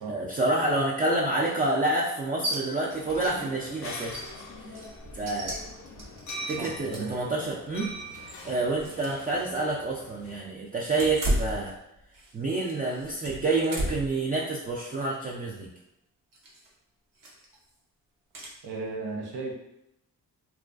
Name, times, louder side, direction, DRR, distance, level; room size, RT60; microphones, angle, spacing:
voice 1, 0.1-4.2 4.7-4.8 5.1-5.6 6.5-7.9 8.4-11.7 12.3-15.7, right 2 dB, 25° right, -5 dB, 0.3 m, -28 dB
sound 1, 2.4-2.6 2.9-3.3 3.6-3.7 4.1-7.2 7.8-9.1 9.4-9.5 10.9-12.3 12.6-14.2 14.6-15.0 16.3-16.7 17.2-17.6 18.3-18.5, right 1 dB, 55° right, 0.8 m, -34 dB
sound 2, 2.9-10.4, equal, 50° left, 0.5 m, -43 dB
voice 2, 6.6-7.3 18.6-19.5, right 3 dB, 90° right, 0 dB, 0.6 m, -35 dB
2.4 x 2.2 x 2.4 m, 0.83 s
cardioid pair, 60°, 39 cm